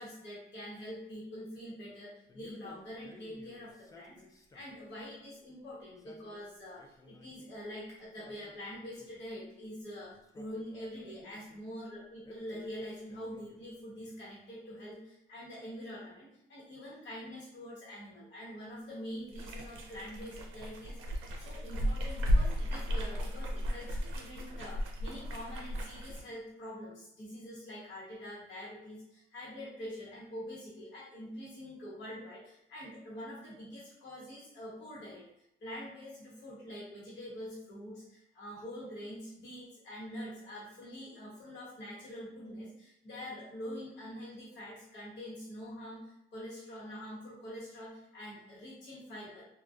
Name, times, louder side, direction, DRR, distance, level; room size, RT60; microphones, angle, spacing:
voice 1, 0.0-35.2 35.6-49.4, equal, 65° left, -6 dB, 1.0 m, -45 dB
Male speech man speaking, 2.3-4.8 5.8-7.6 8.0-9.3 10.1-11.6 12.2-13.8, left 2 dB, 15° left, 0.3 m, -58 dB
sound 1, 19.3-26.2, equal, 90° right, 0.5 m, -34 dB
2.4 x 2.2 x 2.3 m, 0.80 s
cardioid pair, 90°, 20 cm